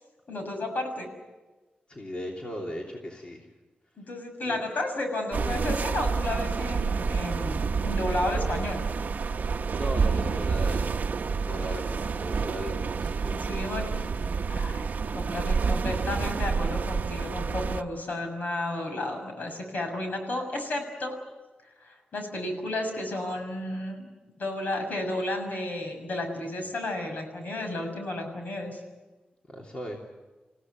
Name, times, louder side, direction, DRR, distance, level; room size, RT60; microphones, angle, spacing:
voice 1, 0.3-1.1 4.0-8.8 13.5-14.0 14.5-14.9 15.1-21.2 21.8-24.1 24.4-28.8, left 1 dB, 65° left, 4 dB, 6.6 m, -32 dB
voice 2, 1.9-3.5 4.4-4.6 9.8-10.9 11.5-13.9 29.5-30.0, equal, 35° left, -1 dB, 3.2 m, -38 dB
sound 1, 5.3-17.8, right 5 dB, 60° right, 0.8 m, -28 dB
30.0 x 16.5 x 9.4 m, 1.2 s
wide cardioid pair, 165°, 3 cm